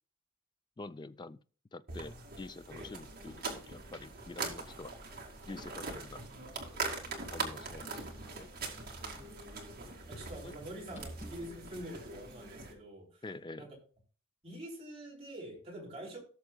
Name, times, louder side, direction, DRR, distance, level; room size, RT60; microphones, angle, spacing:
voice 1, 0.8-1.4 1.7-5.0 5.5-6.2 6.5-6.8 7.3-8.5 9.1-9.3 10.4-10.5 10.9-11.0 13.2-13.7, left 3 dB, 20° left, 0.3 m, -47 dB
sound 1, 1.9-12.7, right 3 dB, 45° right, 2.3 m, -42 dB
sound 2, 2.8-11.8, equal, 35° left, 5.0 m, -59 dB
voice 2, 10.1-13.2 13.6-13.8 14.4-16.2, right 1 dB, 30° right, 3.2 m, -46 dB
17.5 x 6.6 x 2.3 m
head